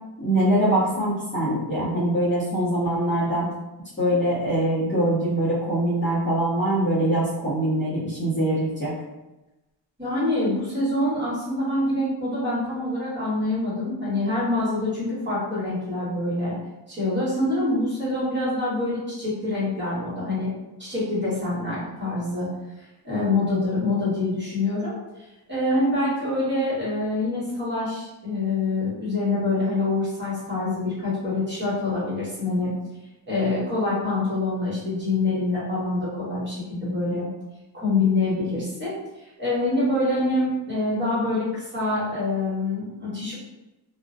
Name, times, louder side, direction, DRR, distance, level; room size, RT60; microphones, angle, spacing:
voice 1, 0.2-3.5 4.0-8.9, right 1 dB, 25° left, -9 dB, 0.6 m, -23 dB
voice 2, 10.0-16.5 16.9-20.5 20.8-22.5 22.8-24.9 25.5-32.7 33.3-37.3 37.7-38.9 39.2-43.3, left 2 dB, 25° right, -9 dB, 1.2 m, -25 dB
2.4 x 2.1 x 2.5 m, 1.0 s
wide cardioid pair, 130°, 44 cm